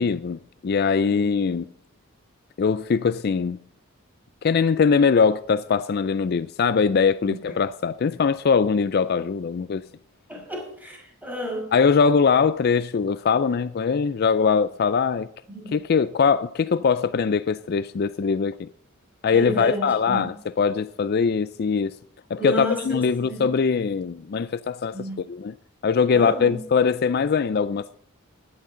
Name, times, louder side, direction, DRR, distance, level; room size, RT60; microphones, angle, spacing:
voice 1, 0.0-1.7 2.6-3.6 4.4-9.8 11.7-15.3 15.7-18.7 19.2-22.0 22.3-25.5 25.8-28.0, left 5 dB, 50° left, 0.4 m, -22 dB
voice 2, 7.2-7.5 10.3-11.7 15.5-15.8 19.3-20.3 22.4-23.5 24.9-25.3 26.1-26.6, right 1 dB, 10° right, 5.4 m, -32 dB
16.5 x 11.0 x 3.8 m
head